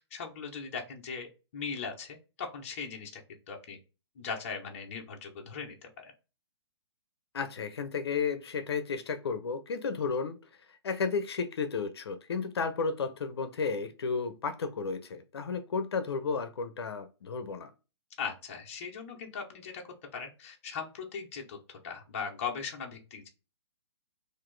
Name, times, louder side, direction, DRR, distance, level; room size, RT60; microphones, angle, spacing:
voice 1, 0.1-1.3 1.5-3.2 3.5-3.8 4.2-6.1 18.2-19.8 20.1-23.3, left 6 dB, 30° left, 1 dB, 0.7 m, -39 dB
voice 2, 7.3-10.4 10.7-17.7, left 5 dB, 65° left, 9 dB, 0.6 m, -33 dB
4.0 x 2.6 x 3.1 m, 0.31 s
hypercardioid pair, 175°, 15 cm